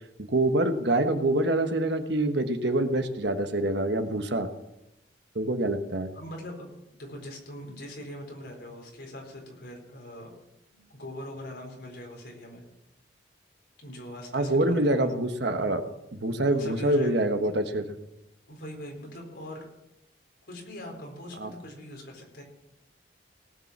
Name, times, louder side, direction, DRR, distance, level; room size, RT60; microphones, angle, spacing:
voice 1, 0.2-4.5 5.3-6.1 14.3-15.8 16.1-17.9 21.4-21.5, right 1 dB, 65° right, 7 dB, 1.2 m, -25 dB
voice 2, 6.1-10.3 10.7-12.6 13.8-15.1 15.6-15.8 16.4-17.3 18.5-19.7 20.5-22.4, left 1 dB, 60° left, 0 dB, 4.4 m, -41 dB
18.5 x 6.9 x 7.3 m, 0.90 s
head